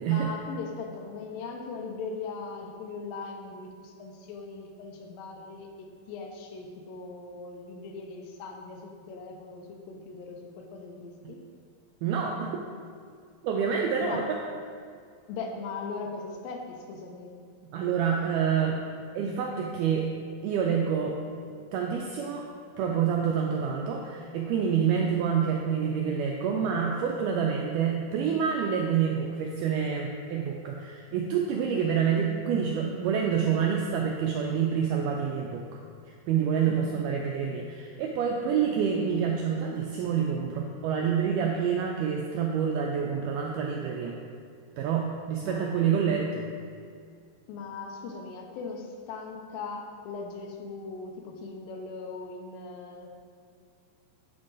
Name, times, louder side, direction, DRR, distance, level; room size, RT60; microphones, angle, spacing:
voice 1, 0.1-11.4 14.0-14.2 15.3-17.3 36.7-37.0 45.4-45.9 47.5-53.1, left 4 dB, 80° left, 2 dB, 2.4 m, -39 dB
voice 2, 12.0-12.5 13.4-14.4 17.7-20.1 20.4-21.2 21.7-22.5 22.8-35.6 36.3-44.2 44.8-46.5, right 7 dB, 85° right, 0 dB, 1.8 m, -27 dB
9.4 x 3.7 x 3.9 m, 2.2 s
omnidirectional pair, 4.1 m